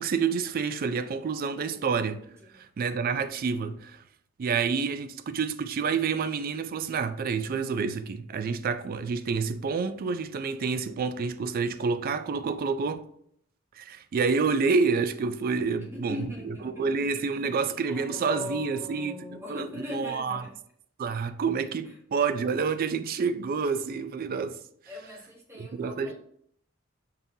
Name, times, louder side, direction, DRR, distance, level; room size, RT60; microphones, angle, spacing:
voice 1, 0.0-2.2 2.5-4.0 4.4-13.0 13.8-16.2 16.5-20.4 21.0-24.6 25.5-26.1, right 5 dB, 45° right, 0.3 m, -28 dB
voice 2, 1.6-1.9 2.3-2.6 15.8-17.1 17.6-20.5 21.8-21.9 24.9-26.1, left 2 dB, 10° right, 1.2 m, -40 dB
5.5 x 3.6 x 2.7 m
head